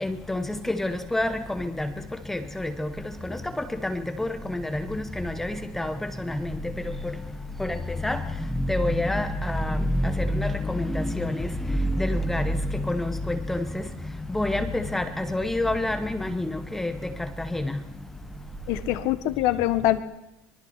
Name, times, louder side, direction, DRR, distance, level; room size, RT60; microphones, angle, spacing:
voice 1, 0.0-1.3 1.6-1.9 2.3-2.9 4.2-4.8 5.2-5.9 8.0-8.2 8.7-9.8 10.4-11.3 12.0-12.5 12.9-13.6 14.3-15.0 15.3-16.4 16.7-16.9 17.5-17.6, left 1 dB, 5° left, 8 dB, 1.2 m, -27 dB
voice 2, 18.7-20.0, left 14 dB, 60° left, 11 dB, 1.7 m, -24 dB
25.5 x 23.5 x 4.5 m, 0.90 s
cardioid pair, 175°, 6 cm